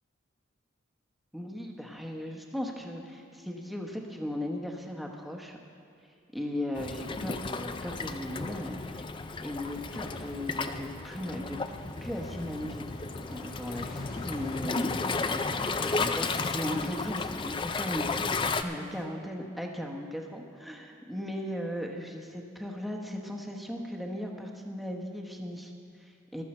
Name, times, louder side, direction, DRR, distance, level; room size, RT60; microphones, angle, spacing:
voice 1, 1.3-5.6 6.3-9.2 9.4-11.6 12.0-12.8 13.2-26.4, left 1 dB, ahead, 1 dB, 0.9 m, -37 dB
Waves surf, 6.8-18.6, left 4 dB, 25° left, 0.4 m, -33 dB
sound 1, 9.6-19.1, left 2 dB, 45° left, 1.2 m, -53 dB
14.5 x 12.5 x 4.3 m, 2.4 s
head